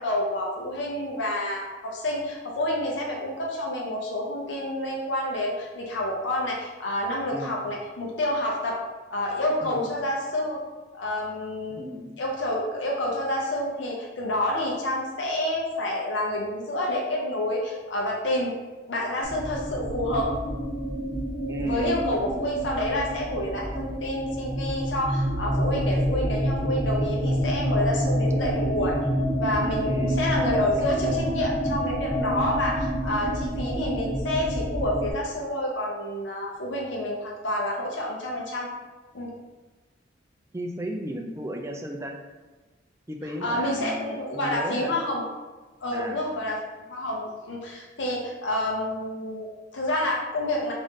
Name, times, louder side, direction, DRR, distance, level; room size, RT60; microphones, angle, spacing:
voice 1, 0.0-8.8 9.1-10.6 10.9-11.8 12.2-18.5 18.9-20.3 21.6-29.0 29.4-38.7 39.1-39.3 43.4-45.2 45.8-46.6 46.9-50.7, left 1 dB, 70° left, -2 dB, 0.6 m, -28 dB
voice 2, 11.7-12.2 21.5-22.1 29.8-30.2 40.5-42.2 43.1-45.0 45.9-46.2, right 1 dB, 15° right, 3 dB, 0.3 m, -34 dB
sound 1, 19.2-35.1, equal, 15° left, 1.3 m, -28 dB
3.6 x 2.5 x 3.8 m, 1.2 s
head